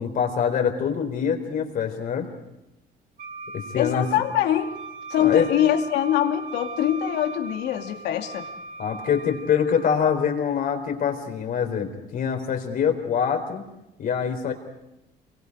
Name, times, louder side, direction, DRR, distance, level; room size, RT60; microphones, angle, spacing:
voice 1, 0.0-2.3 3.5-4.1 5.2-5.5 8.8-13.6 14.0-14.5, left 7 dB, 55° left, 4 dB, 4.3 m, -24 dB
Wind instrument woodwind instrument, 3.2-9.9, right 2 dB, 50° right, 1.9 m, -39 dB
voice 2, 3.7-4.7 5.1-8.5, left 10 dB, 90° left, 4 dB, 2.4 m, -23 dB
27.5 x 23.5 x 4.9 m, 0.88 s
cardioid pair, 110°, 17 cm